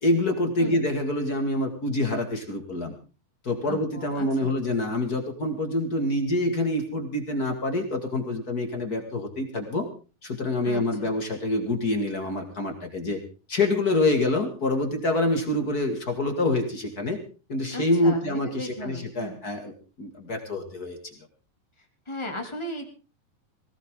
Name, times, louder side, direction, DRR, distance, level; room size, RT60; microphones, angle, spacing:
voice 1, 0.0-2.9 3.4-9.9 10.2-13.2 13.5-17.2 17.5-21.1, left 2 dB, 30° left, 4 dB, 2.1 m, -26 dB
voice 2, 3.6-4.5 10.6-11.1 17.7-19.4 22.1-22.9, equal, 10° left, 3 dB, 2.4 m, -36 dB
18.5 x 18.0 x 3.7 m, 0.35 s
omnidirectional pair, 3.9 m